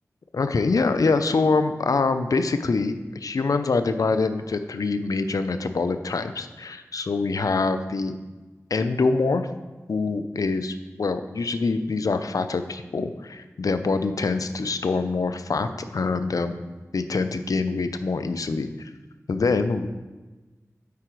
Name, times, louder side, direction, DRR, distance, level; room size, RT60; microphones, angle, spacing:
voice 1, 0.3-8.2 8.7-9.5 9.9-16.6 16.9-18.9 19.3-19.9, left 4 dB, 85° left, 9 dB, 0.5 m, -25 dB
8.3 x 4.9 x 4.6 m, 1.2 s
wide cardioid pair, 45°, 6 cm